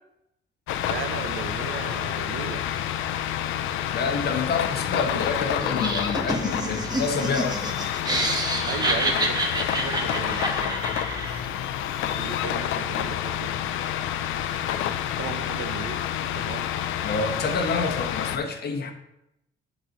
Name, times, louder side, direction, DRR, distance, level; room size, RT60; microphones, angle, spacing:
sound 1, 0.7-18.4, left 10 dB, 90° left, 0.5 m, -29 dB
voice 1, 0.8-2.6 4.9-5.2 6.6-6.8 8.6-10.9 12.1-13.5 15.2-16.0 16.3-16.7, right 7 dB, 85° right, 8 dB, 0.8 m, -36 dB
voice 2, 3.9-7.7 17.0-18.9, left 4 dB, 55° left, 5 dB, 1.1 m, -28 dB
Laughter, 5.6-11.5, right 2 dB, 20° right, 1.2 m, -28 dB
11.5 x 4.1 x 3.0 m, 0.82 s
cardioid pair, 90°, 20 cm